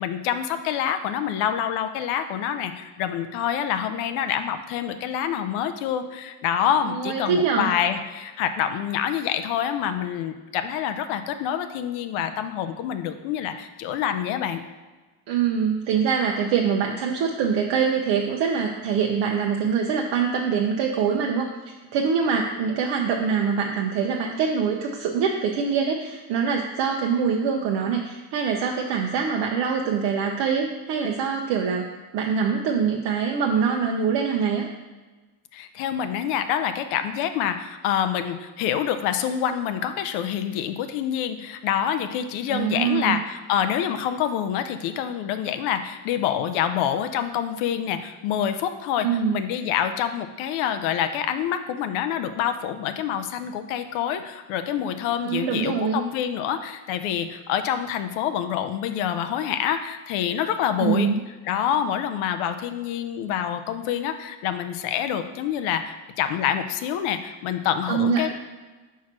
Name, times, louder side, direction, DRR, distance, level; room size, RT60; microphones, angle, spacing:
voice 1, 0.0-14.6 35.5-61.1 61.5-68.3, left 9 dB, 75° left, 9 dB, 0.6 m, -26 dB
voice 2, 6.9-7.7 15.3-21.5 21.9-34.7 42.5-43.2 49.0-49.4 55.2-56.0 60.8-61.1 67.9-68.3, right 6 dB, 65° right, 0 dB, 0.8 m, -24 dB
4.7 x 4.5 x 5.9 m, 1.3 s
cardioid pair, 135°, 48 cm